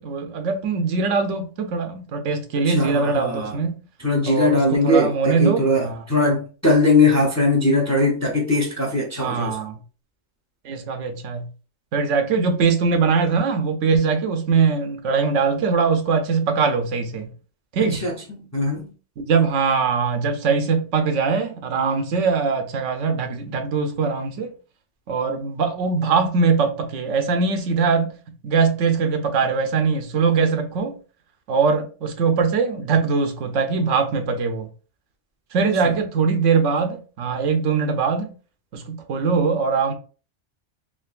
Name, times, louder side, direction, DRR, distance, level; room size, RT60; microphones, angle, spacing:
voice 1, 0.0-3.8 4.2-6.0 9.2-9.8 10.6-11.5 11.9-17.3 17.7-18.0 19.3-24.5 25.1-28.2 28.4-31.0 31.5-34.7 35.5-38.3 38.7-39.9, right 5 dB, 90° right, 1.0 m, -21 dB
voice 2, 2.6-3.7 4.0-9.6 17.9-18.9 35.8-36.0, left 2 dB, 25° left, 0.4 m, -20 dB
3.7 x 2.3 x 2.4 m
omnidirectional pair, 1.2 m